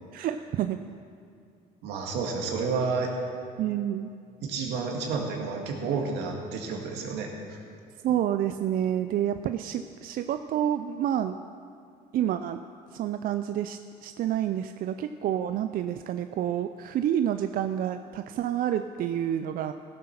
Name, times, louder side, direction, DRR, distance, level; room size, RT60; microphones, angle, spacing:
voice 1, 0.1-0.8 3.6-4.1 8.0-11.3 12.1-12.6 12.9-19.7, right 10 dB, 60° right, 9 dB, 0.4 m, -28 dB
voice 2, 1.8-3.1 4.4-7.6, right 4 dB, 85° right, 1 dB, 2.0 m, -30 dB
16.0 x 7.6 x 5.9 m, 2.4 s
cardioid pair, 110°, 17 cm